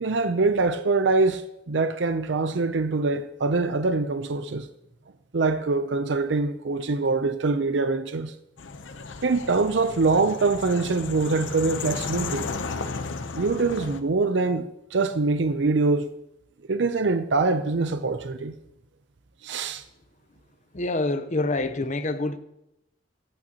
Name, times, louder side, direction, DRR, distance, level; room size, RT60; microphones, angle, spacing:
voice 1, 0.0-4.7 5.3-8.3 9.2-12.5 13.4-16.1 16.7-18.5 19.4-19.8, right 3 dB, 65° right, 0.6 m, -24 dB
sound 1, 8.6-14.0, left 4 dB, 75° left, 0.8 m, -34 dB
voice 2, 20.7-22.4, left 2 dB, 40° left, 0.8 m, -26 dB
22.0 x 8.8 x 2.9 m
head